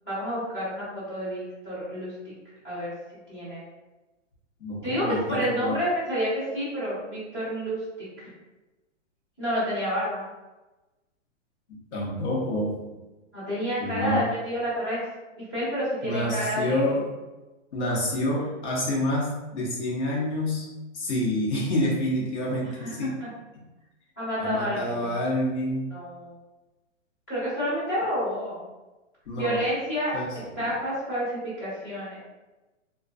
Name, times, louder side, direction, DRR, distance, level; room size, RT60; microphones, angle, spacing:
voice 1, 0.0-2.1 2.6-2.9 3.3-3.6 4.8-7.8 8.2-8.3 9.4-10.2 13.3-15.0 15.4-17.0 22.7-23.3 24.2-25.1 25.9-26.3 27.3-28.6 29.3-30.1 30.6-32.2, equal, 15° left, -14 dB, 0.6 m, -29 dB
voice 2, 4.6-5.8 11.9-12.7 13.8-14.3 16.0-17.0 17.7-20.7 20.9-23.2 24.4-25.9 29.3-29.6 30.1-30.3 30.5-30.7, left 1 dB, 60° left, -3 dB, 0.9 m, -27 dB
2.3 x 2.2 x 2.5 m, 1.1 s
hypercardioid pair, 180°, 38 cm